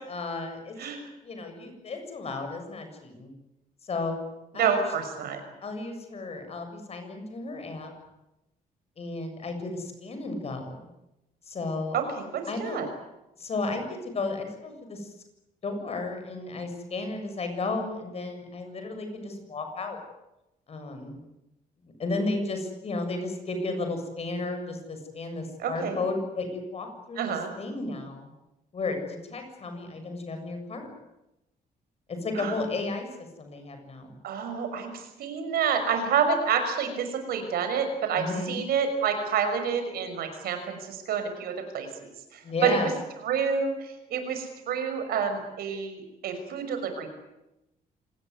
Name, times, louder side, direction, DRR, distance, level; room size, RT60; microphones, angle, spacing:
voice 1, 0.1-0.9 1.2-3.3 3.8-4.3 4.5-4.8 5.6-7.9 9.0-10.9 11.5-12.0 12.5-12.8 13.4-15.1 15.6-20.0 20.7-21.2 21.8-28.3 28.7-30.9 32.1-33.1 33.4-34.2 38.1-38.6 42.4-42.9, left 3 dB, 40° left, 6 dB, 7.0 m, -33 dB
voice 2, 4.5-5.4 11.9-12.9 25.6-26.0 27.2-27.5 32.4-32.5 34.2-41.9 42.3-42.8 43.2-47.1, right 6 dB, 85° right, 7 dB, 5.9 m, -28 dB
26.5 x 19.5 x 9.6 m, 0.93 s
cardioid pair, 125°, 15 cm